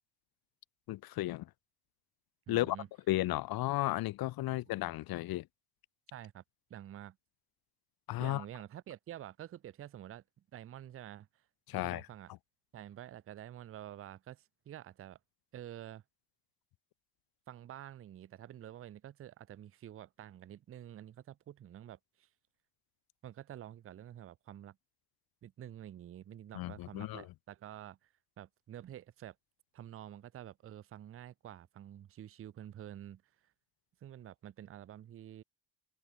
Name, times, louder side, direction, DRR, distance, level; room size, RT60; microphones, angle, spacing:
voice 1, 0.9-1.5 2.5-2.8 3.1-5.5 8.1-8.4 11.7-12.1 26.5-27.3, left 16 dB, 50° left, 0.6 m, -34 dB
voice 2, 2.5-2.9 4.5-4.6 6.1-6.4 6.7-7.2 8.2-10.2 10.5-11.3 11.7-12.3 12.7-15.2 15.5-16.0 17.5-22.3 23.2-24.8 25.4-28.1 28.4-29.4 29.7-33.2 34.0-35.4, right 11 dB, 30° right, 0.5 m, -49 dB
cardioid pair, 150°, 49 cm